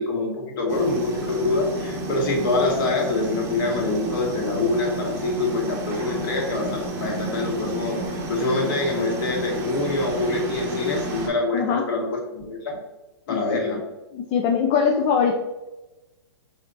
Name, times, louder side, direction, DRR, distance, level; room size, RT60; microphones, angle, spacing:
voice 1, 0.0-12.8 13.3-13.8, left 2 dB, 50° left, 0 dB, 1.6 m, -25 dB
sound 1, 0.7-11.3, right 2 dB, 20° right, 0.8 m, -31 dB
voice 2, 11.5-11.9 13.3-13.6 14.1-15.4, left 6 dB, 25° left, 1 dB, 0.4 m, -22 dB
4.8 x 4.1 x 2.6 m, 1.1 s
hypercardioid pair, 145°, 14 cm